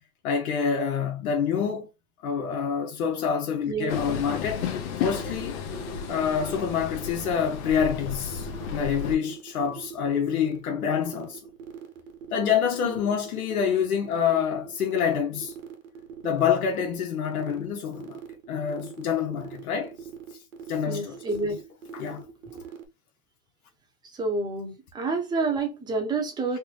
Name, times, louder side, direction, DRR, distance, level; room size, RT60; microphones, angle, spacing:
voice 1, 0.2-1.9 2.2-4.7 5.0-5.6 6.1-11.4 12.3-15.5 16.2-18.2 18.5-19.9 20.7-21.2 21.9-22.2, left 7 dB, 85° left, 0.9 m, -27 dB
Train, 3.9-9.2, left 7 dB, 55° left, 0.9 m, -33 dB
sound 1, 5.1-22.8, right 8 dB, 85° right, 1.2 m, -42 dB
voice 2, 20.9-21.6 24.2-26.6, right 3 dB, 10° right, 0.7 m, -28 dB
3.4 x 2.1 x 3.1 m
hypercardioid pair, 130°, 42 cm